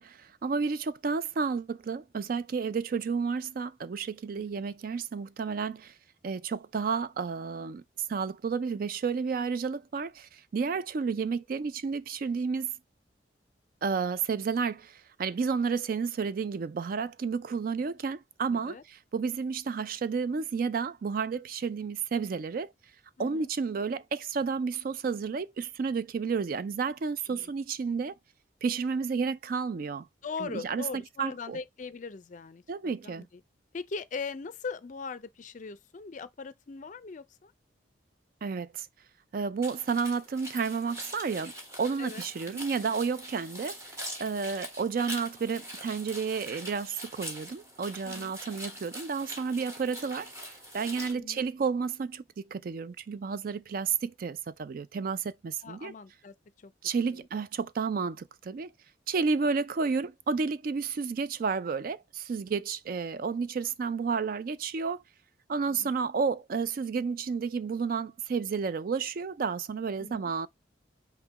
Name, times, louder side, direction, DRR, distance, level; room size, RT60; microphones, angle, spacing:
voice 1, 0.0-5.9 6.2-7.8 8.1-12.7 13.8-22.7 23.2-28.1 28.6-30.1 30.4-31.6 32.7-33.2 38.4-38.9 39.3-41.5 41.8-52.2 52.5-55.9 56.8-58.7 59.1-65.0 65.5-70.5, right 5 dB, 50° right, 0.3 m, -31 dB
voice 2, 18.5-18.8 23.2-23.5 27.3-27.5 30.2-33.3 33.7-37.5 42.0-42.6 48.0-48.3 51.1-51.5 55.6-56.7 57.0-57.2 65.7-66.0 70.0-70.3, left 4 dB, 45° left, 0.4 m, -41 dB
sound 1, 39.6-51.1, equal, 15° right, 1.2 m, -43 dB
5.8 x 2.2 x 3.9 m
head